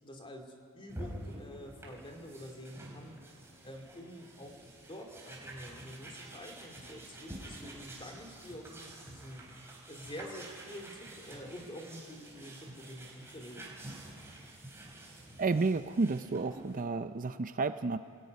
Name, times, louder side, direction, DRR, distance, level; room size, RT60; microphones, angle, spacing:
voice 1, 0.0-9.4 9.9-13.8, equal, 25° left, 3 dB, 2.6 m, -47 dB
sound 1, 0.9-16.8, right 1 dB, 10° right, 4.0 m, -49 dB
voice 2, 15.4-18.0, right 3 dB, 35° right, 11 dB, 0.5 m, -31 dB
23.5 x 17.5 x 9.4 m, 2.9 s
head